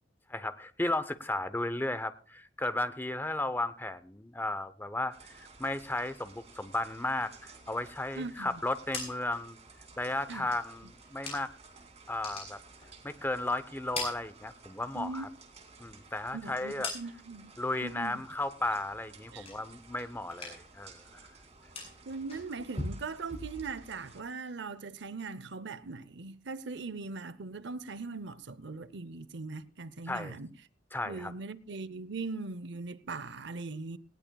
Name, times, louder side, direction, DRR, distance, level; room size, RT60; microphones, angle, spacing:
voice 1, 0.3-9.6 10.0-11.5 12.1-12.6 13.0-15.3 15.8-16.9 17.6-21.0 30.1-30.4 30.9-31.3, left 2 dB, 10° left, 0.7 m, -34 dB
sound 1, 5.1-24.2, right 4 dB, 35° right, 2.7 m, -55 dB
voice 2, 8.2-8.6 10.3-10.5 14.9-15.3 16.3-17.5 17.8-18.2 19.3-19.5 22.1-30.5 31.1-34.0, right 3 dB, 70° right, 0.7 m, -40 dB
sound 2, 8.6-11.7 12.0-13.4 13.7-15.0 15.3-17.5 17.8-18.3 18.6-20.0 20.2-20.8 21.1-24.0, left 3 dB, 35° left, 7.3 m, -43 dB
19.0 x 18.0 x 2.3 m
head